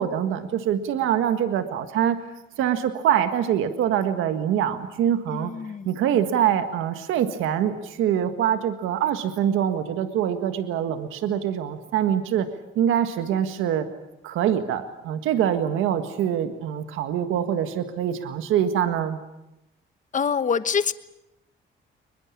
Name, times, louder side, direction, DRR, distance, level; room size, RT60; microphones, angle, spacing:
voice 1, 0.0-2.2 2.6-5.5 5.8-12.5 12.7-13.9 14.2-19.2, right 9 dB, 90° right, 8 dB, 1.7 m, -24 dB
voice 2, 5.3-6.2 20.1-20.9, left 6 dB, 40° left, 13 dB, 1.2 m, -26 dB
22.5 x 21.0 x 8.5 m, 0.93 s
cardioid pair, 90°, 20 cm